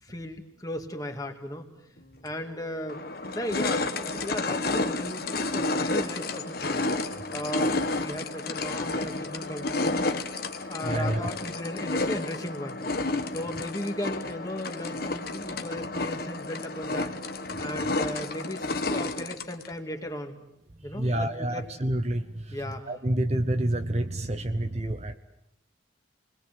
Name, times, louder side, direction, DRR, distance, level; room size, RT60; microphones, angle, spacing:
voice 1, 0.0-1.6 2.2-6.8 7.3-10.1 10.7-12.8 13.3-17.2 17.6-20.4 20.8-21.7 22.5-22.9, left 1 dB, 20° left, 4 dB, 2.3 m, -36 dB
sound 1, 2.3-2.4 2.9-19.7, left 2 dB, 50° left, 1.4 m, -31 dB
voice 2, 10.8-11.3 20.9-22.6 22.9-25.2, right 1 dB, 35° right, 8 dB, 0.9 m, -28 dB
29.5 x 21.0 x 7.8 m, 0.83 s
head